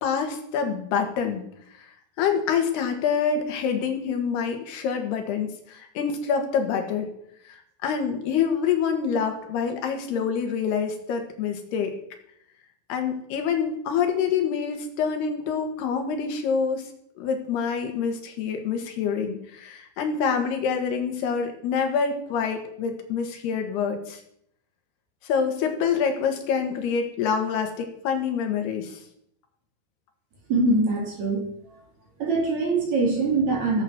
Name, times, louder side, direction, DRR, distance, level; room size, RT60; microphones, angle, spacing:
voice 1, 0.0-1.4 1.8-1.9 2.2-7.1 7.5-11.9 12.9-16.9 17.2-24.2 25.2-29.0, left 6 dB, 85° left, 4 dB, 3.8 m, -26 dB
voice 2, 30.5-31.8 32.2-33.8, right 3 dB, 45° right, 0 dB, 4.3 m, -23 dB
17.0 x 8.2 x 6.1 m, 0.72 s
omnidirectional pair, 4.5 m